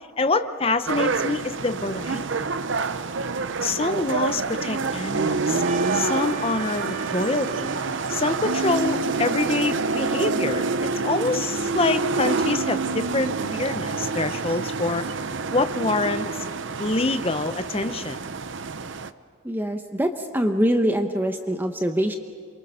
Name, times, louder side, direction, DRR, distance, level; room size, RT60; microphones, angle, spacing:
voice 1, 0.2-2.2 3.6-5.6 5.9-7.7 8.1-15.1 15.5-16.3 16.8-18.2, left 3 dB, 25° left, 10 dB, 0.8 m, -26 dB
sound 1, 0.9-19.1, right 4 dB, 60° right, 0.6 m, -27 dB
Trumpet, 5.6-10.1, right 5 dB, 40° right, 3.1 m, -39 dB
Human voice, 8.4-9.4 9.9-11.5 12.3-13.6, right 2 dB, 90° right, 1.0 m, -32 dB
voice 2, 19.4-22.2, equal, 10° right, 5 dB, 0.9 m, -24 dB
27.5 x 23.5 x 5.7 m, 2.1 s
head